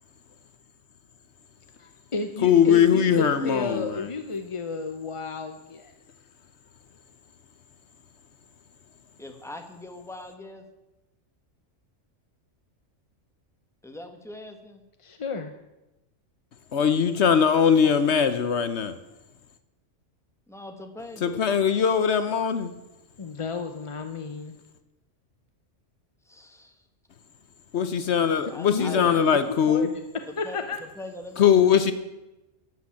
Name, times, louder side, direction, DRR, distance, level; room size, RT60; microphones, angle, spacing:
voice 1, 1.8-5.9 15.0-15.5 23.2-24.6 28.7-29.2 29.7-30.0 30.4-30.8, left 3 dB, 35° left, 7 dB, 0.6 m, -32 dB
voice 2, 2.4-4.1 16.7-18.9 21.2-22.7 27.7-29.9 31.4-31.9, left 7 dB, 65° left, 11 dB, 1.0 m, -21 dB
voice 3, 9.2-10.6 13.8-14.8 17.7-18.2 20.5-21.4 26.3-26.8 28.5-29.2 30.3-31.5 31.7-31.9, left 1 dB, ahead, 5 dB, 1.3 m, -42 dB
12.0 x 7.8 x 8.6 m, 1.0 s
omnidirectional pair, 1.3 m